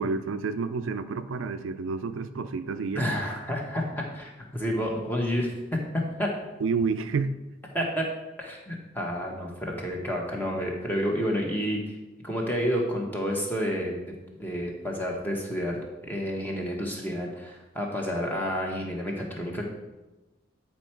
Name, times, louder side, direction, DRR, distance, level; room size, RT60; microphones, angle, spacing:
voice 1, 0.0-3.1 6.6-7.3, right 4 dB, 85° right, 10 dB, 0.4 m, -29 dB
voice 2, 2.9-5.5 6.2-6.3 7.7-8.0 8.4-11.8 12.2-14.1 14.4-19.6, equal, 10° left, -1 dB, 1.2 m, -30 dB
9.2 x 4.5 x 4.5 m, 1.1 s
head